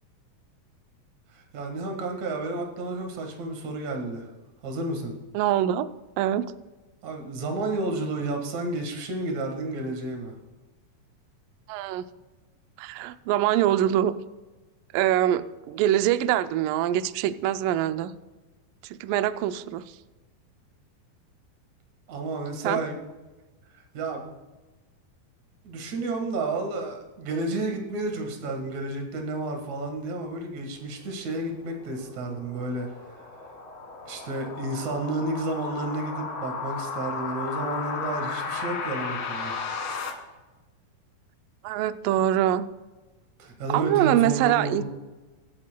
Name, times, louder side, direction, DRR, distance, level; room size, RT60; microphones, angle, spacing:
voice 1, 1.3-4.3 4.6-5.1 7.0-10.3 22.1-23.0 23.9-24.4 25.6-32.9 33.2-33.3 34.1-39.6 43.4-44.8, right 2 dB, 55° right, 3 dB, 2.6 m, -31 dB
voice 2, 5.3-5.9 6.2-6.5 11.7-12.1 12.8-14.1 14.9-18.1 18.8-20.0 22.6-22.8 41.6-42.7 43.7-44.8, right 12 dB, 85° right, 11 dB, 1.9 m, -24 dB
sound 1, 31.4-40.1, left 5 dB, 90° left, 3.7 m, -34 dB
24.0 x 8.6 x 2.2 m, 1.2 s
omnidirectional pair, 4.4 m